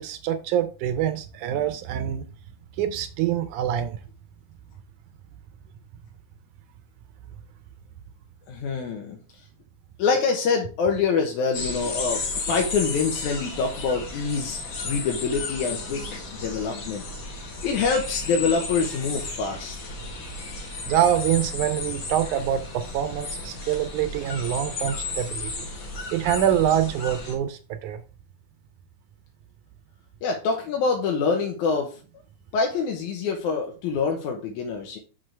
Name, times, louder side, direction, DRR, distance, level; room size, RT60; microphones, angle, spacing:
voice 1, 0.0-2.2 2.8-4.0 20.9-25.7 26.1-28.0, right 10 dB, 80° right, 2.0 m, -25 dB
voice 2, 8.5-9.4 10.0-19.8 30.2-32.0 32.5-35.0, left 5 dB, 75° left, 2.2 m, -26 dB
sound 1, 11.5-27.3, left 3 dB, 50° left, 1.6 m, -33 dB
6.2 x 6.1 x 3.3 m
omnidirectional pair, 3.7 m